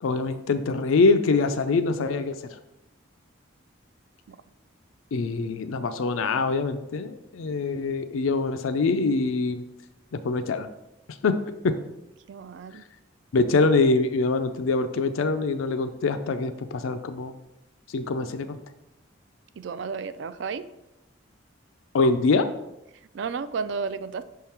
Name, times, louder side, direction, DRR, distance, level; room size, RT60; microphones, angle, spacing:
voice 1, 0.0-2.3 5.1-9.6 10.2-10.7 11.2-11.4 11.6-11.7 13.3-17.3 17.9-18.6 21.9-22.5, left 3 dB, 85° left, 10 dB, 0.4 m, -24 dB
voice 2, 12.3-12.8 19.6-20.6 23.1-24.2, right 5 dB, 60° right, 13 dB, 0.3 m, -32 dB
6.2 x 3.7 x 4.3 m, 0.90 s
head